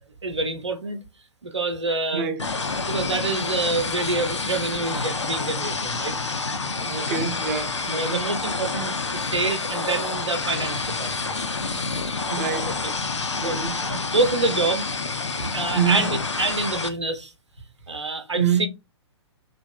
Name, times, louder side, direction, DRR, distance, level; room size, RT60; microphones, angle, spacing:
voice 1, 0.2-1.0 1.4-2.3 2.8-6.2 7.9-11.4 12.8-12.9 13.4-13.6 13.9-14.9 15.4-16.1 16.4-17.3 17.9-18.7, right 3 dB, 80° right, 0.7 m, -27 dB
voice 2, 2.1-2.5 6.8-8.3 12.3-12.8 13.4-13.9 15.7-16.1 18.4-18.7, right 7 dB, 35° right, 0.6 m, -26 dB
sound 1, 2.4-16.9, left 3 dB, 80° left, 0.5 m, -28 dB
2.7 x 2.6 x 2.3 m
figure-of-eight pair, 115°, 15 cm